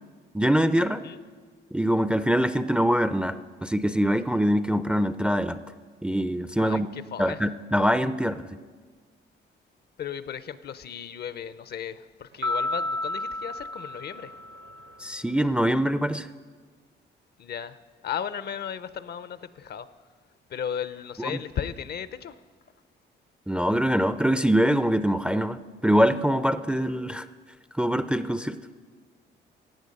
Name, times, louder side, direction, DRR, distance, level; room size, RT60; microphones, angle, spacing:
voice 1, 0.3-1.1 1.7-5.6 6.0-6.9 7.2-8.5 15.0-16.3 21.2-21.4 23.5-27.3 27.8-28.6, equal, 5° right, 12 dB, 0.4 m, -24 dB
voice 2, 6.6-7.4 10.0-14.3 17.4-17.8 18.0-19.9 20.5-22.3, left 8 dB, 55° left, 15 dB, 0.6 m, -35 dB
sound 1, 12.4-14.9, left 2 dB, 70° right, 0.8 m, -31 dB
15.0 x 8.9 x 5.3 m, 1.5 s
cardioid pair, 90°, 20 cm